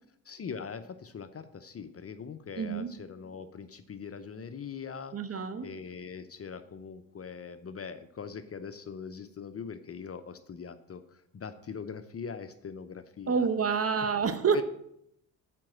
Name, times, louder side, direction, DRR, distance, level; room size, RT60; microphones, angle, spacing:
voice 1, 0.2-5.2 5.6-13.5 14.5-14.6, left 6 dB, 30° left, 11 dB, 0.7 m, -41 dB
voice 2, 2.6-2.9 5.1-5.7 13.3-14.6, right 6 dB, 30° right, 11 dB, 0.8 m, -28 dB
7.5 x 5.3 x 7.5 m, 0.77 s
hypercardioid pair, 50°, 49 cm